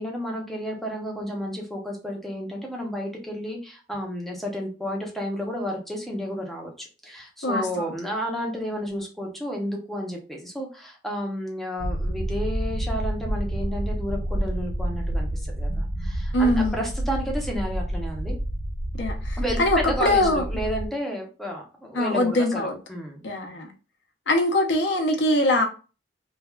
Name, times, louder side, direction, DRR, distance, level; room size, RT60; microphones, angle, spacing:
voice 1, 0.0-18.4 19.4-23.2, equal, ahead, 0.7 m, -32 dB
voice 2, 7.4-7.9 16.3-16.8 18.9-20.4 21.9-22.8 23.2-23.7 24.3-25.6, left 1 dB, 80° left, 0.7 m, -22 dB
sound 1, 11.8-20.9, right 1 dB, 80° right, 0.5 m, -29 dB
3.3 x 2.3 x 2.2 m
head